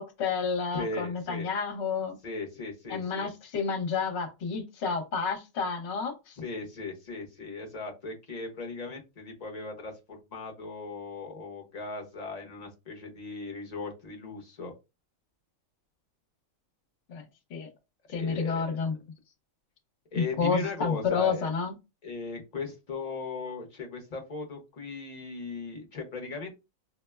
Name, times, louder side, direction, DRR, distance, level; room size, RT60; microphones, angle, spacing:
voice 1, 0.0-2.2 2.9-6.4 17.1-17.2 17.5-17.7 18.1-18.9 20.1-21.7, left 5 dB, 55° left, 3 dB, 1.1 m, -30 dB
voice 2, 0.7-1.5 2.2-3.3 6.4-14.7 18.1-18.6 20.1-21.5 22.0-26.6, left 3 dB, 35° left, 3 dB, 0.8 m, -38 dB
4.9 x 2.1 x 2.2 m, 0.26 s
omnidirectional pair, 1.5 m